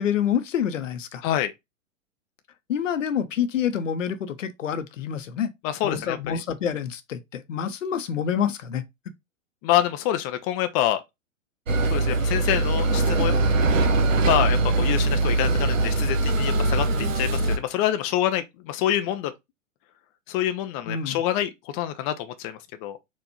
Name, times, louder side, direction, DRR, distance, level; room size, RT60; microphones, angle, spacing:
voice 1, 0.0-1.2 2.7-5.5 5.8-8.8 20.9-21.2, left 8 dB, 70° left, 0.8 m, -27 dB
voice 2, 5.6-6.4 9.6-11.0 11.9-13.4 14.2-19.3 20.3-23.0, left 12 dB, 30° left, 0.4 m, -26 dB
sound 1, 11.7-17.6, right 2 dB, 75° right, 1.0 m, -22 dB
4.5 x 2.5 x 4.2 m
figure-of-eight pair, 100°, 39 cm